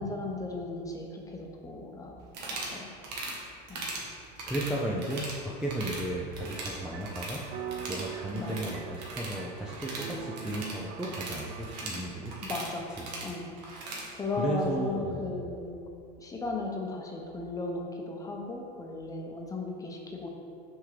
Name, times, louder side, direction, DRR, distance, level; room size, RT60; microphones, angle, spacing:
voice 1, 0.0-2.1 2.4-2.9 3.7-3.9 8.3-8.6 12.4-12.9 13.2-13.5 14.1-15.8 16.2-20.3, left 2 dB, 15° left, 0 dB, 0.9 m, -36 dB
sound 1, 2.3-2.8 3.0-3.4 3.7-4.1 4.4-5.4 5.6-6.0 6.3-7.4 7.7-14.1, right 2 dB, 85° right, 1.3 m, -39 dB
voice 2, 4.5-12.4 13.0-13.1 14.4-15.4, right 1 dB, 5° right, -5 dB, 0.5 m, -34 dB
sound 2, 6.4-12.1, right 8 dB, 65° right, 0.5 m, -43 dB
6.2 x 3.7 x 4.9 m, 2.4 s
supercardioid pair, 120°, 21 cm